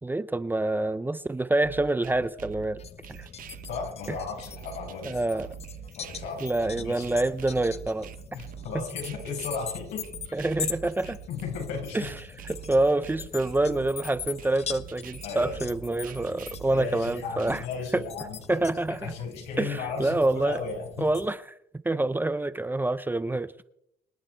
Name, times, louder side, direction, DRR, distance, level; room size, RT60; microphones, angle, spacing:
voice 1, 0.0-2.8 3.1-3.3 5.0-5.5 6.4-8.1 8.7-8.8 10.3-11.2 11.9-12.1 12.5-17.6 17.9-18.0 18.5-19.1 19.6-20.6 21.0-21.4 21.8-23.5, right 2 dB, 10° right, 0.6 m, -26 dB
sound 1, 1.6-17.6, right 12 dB, 55° right, 0.9 m, -44 dB
sound 2, 2.8-21.3, left 7 dB, 40° left, 1.0 m, -42 dB
voice 2, 3.7-5.2 6.0-6.4 6.8-7.1 8.3-10.1 11.3-12.1 15.2-15.6 16.7-21.1 21.9-22.0, left 5 dB, 85° left, 5.6 m, -35 dB
25.5 x 9.5 x 4.5 m
cardioid pair, 110°, 17 cm